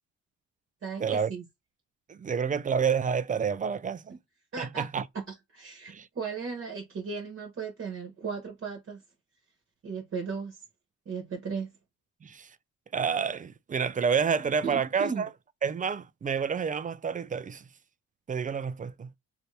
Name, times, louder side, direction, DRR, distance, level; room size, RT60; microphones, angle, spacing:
voice 1, 0.8-1.4 4.1-4.2 4.5-4.9 5.1-9.0 9.8-10.6 11.0-11.7 14.4-15.2, right 5 dB, 45° right, 1.1 m, -36 dB
voice 2, 2.1-4.1 4.6-5.0 5.9-6.1 12.2-12.5 12.9-15.3 15.6-17.6 18.3-19.1, right 6 dB, 25° right, 0.4 m, -29 dB
2.8 x 2.6 x 3.2 m
cardioid pair, 90°, 30 cm